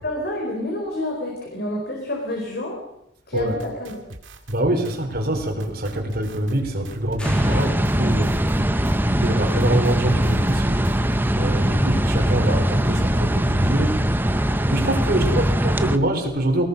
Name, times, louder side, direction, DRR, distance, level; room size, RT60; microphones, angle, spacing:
voice 1, 0.0-2.8 3.3-4.0 7.5-7.9 12.8-13.0, left 1 dB, 55° left, 0 dB, 4.3 m, -29 dB
sound 1, 3.4-11.2, right 1 dB, 90° right, 2.5 m, -41 dB
voice 2, 4.5-8.3 9.0-11.0 11.3-14.1 14.7-16.6, right 1 dB, 55° right, 4 dB, 3.9 m, -25 dB
sound 2, 7.2-8.7, equal, 5° left, 2.4 m, -40 dB
sound 3, 7.2-16.0, equal, 10° right, 0.9 m, -21 dB
22.0 x 20.0 x 6.5 m, 0.83 s
head